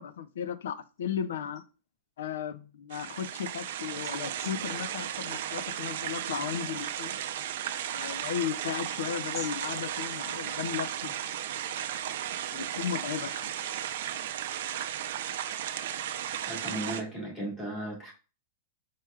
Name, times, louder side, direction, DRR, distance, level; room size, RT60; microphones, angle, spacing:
voice 1, 0.0-1.6 2.2-7.2 7.9-11.2 12.5-13.5 15.5-15.6, left 8 dB, 85° left, 0.5 m, -35 dB
sound 1, 2.9-17.0, right 10 dB, 55° right, 0.4 m, -35 dB
voice 2, 16.5-18.1, right 1 dB, 15° left, 1.7 m, -36 dB
4.5 x 4.5 x 2.3 m
supercardioid pair, 175°, 0 cm